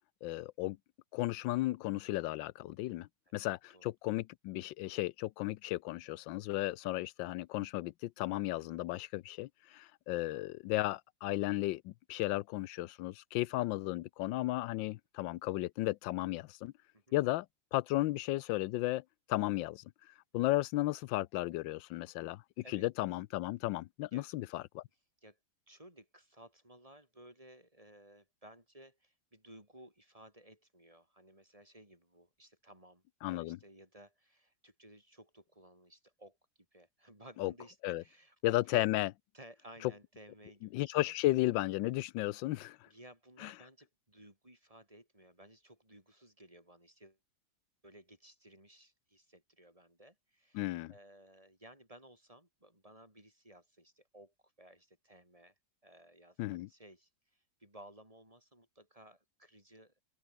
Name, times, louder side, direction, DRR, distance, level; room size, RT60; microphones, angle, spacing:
voice 1, 0.2-0.8 1.1-16.7 17.1-17.5 17.7-19.0 19.3-19.8 20.3-22.4 22.7-24.8 33.2-33.6 37.4-37.5 37.8-38.0 38.4-39.1 39.8-39.9 40.7-42.8 43.4-43.5 50.5-50.9 56.4-56.7, left 17 dB, 90° left, 1.3 m, -34 dB
voice 2, 25.7-36.4 36.7-38.8 39.3-41.1 42.9-47.2 47.8-55.5 55.8-60.0, right 1 dB, 15° right, 6.6 m, -57 dB
open air
omnidirectional pair, 2.0 m